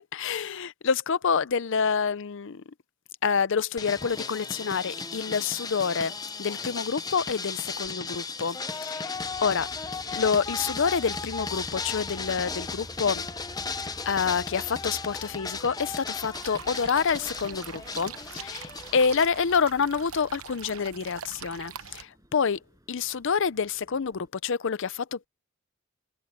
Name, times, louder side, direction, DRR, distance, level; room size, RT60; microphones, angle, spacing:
voice 1, 0.0-2.6 3.2-9.2 9.4-9.7 10.1-13.3 14.1-22.6 22.9-25.3, left 6 dB, 60° left, 0.6 m, -27 dB
sound 1, 3.8-19.3, left 4 dB, 20° left, 0.8 m, -35 dB
Train, 9.1-24.3, equal, 15° right, 7.8 m, -50 dB
sound 2, 16.3-22.0, right 8 dB, 75° right, 0.9 m, -43 dB
head